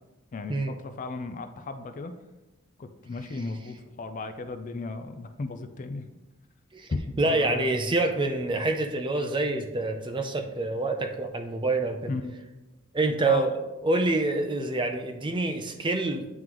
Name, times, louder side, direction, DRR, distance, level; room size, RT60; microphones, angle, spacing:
voice 1, 0.3-2.1 2.8-6.0 7.2-7.8 12.1-12.3 13.2-13.5, left 3 dB, 40° left, 8 dB, 0.4 m, -36 dB
voice 2, 7.2-12.1 12.9-16.3, right 2 dB, 25° right, 5 dB, 0.5 m, -27 dB
9.3 x 3.7 x 3.0 m, 1.0 s
head